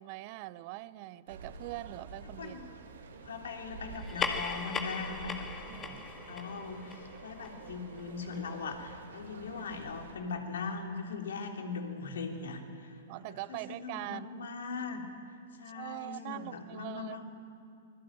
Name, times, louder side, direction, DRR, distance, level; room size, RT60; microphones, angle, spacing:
voice 1, 0.0-2.6 5.7-6.1 13.1-14.5 15.7-17.3, right 18 dB, 45° right, 17 dB, 0.8 m, -43 dB
sound 1, 1.3-10.1, right 3 dB, 75° right, 3.2 m, -48 dB
voice 2, 2.4-2.7 3.2-15.0 15.6-17.3, left 4 dB, 70° left, 3 dB, 3.3 m, -40 dB
sound 2, 3.9-8.8, left 4 dB, 20° left, 2.0 m, -39 dB
25.0 x 21.0 x 9.0 m, 2.6 s
hypercardioid pair, 110°, 0 cm